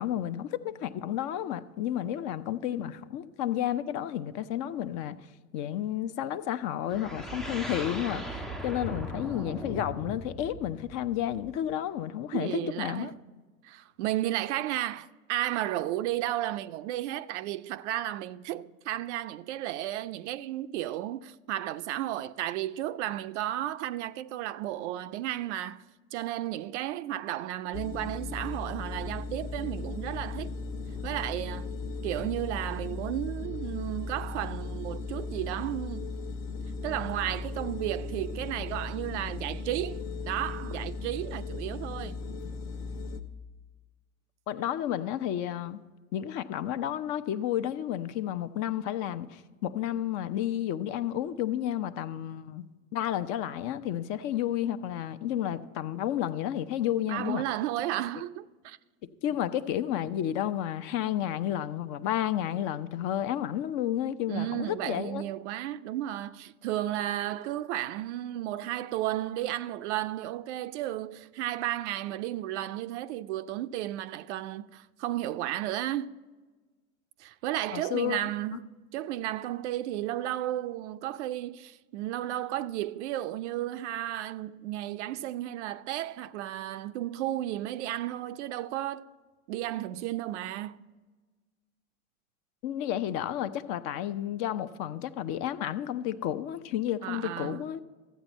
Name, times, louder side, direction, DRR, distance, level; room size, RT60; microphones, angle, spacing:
voice 1, 0.0-5.2 5.5-13.1 44.5-45.8 46.1-52.6 52.9-57.4 59.2-65.2 77.7-78.2 78.5-78.6 92.6-97.8, left 11 dB, 45° left, 0.6 m, -31 dB
sound 1, 6.9-11.7, equal, ahead, 0.4 m, -39 dB
voice 2, 12.3-13.1 13.6-25.8 26.1-30.5 31.0-31.7 32.0-36.1 36.8-42.2 57.1-58.8 64.3-76.1 77.2-89.0 89.5-90.9 97.0-97.6, right 13 dB, 55° right, 0.5 m, -33 dB
sound 2, 27.7-43.2, left 4 dB, 65° left, 1.0 m, -37 dB
13.5 x 8.2 x 4.2 m
hypercardioid pair, 90°, 41 cm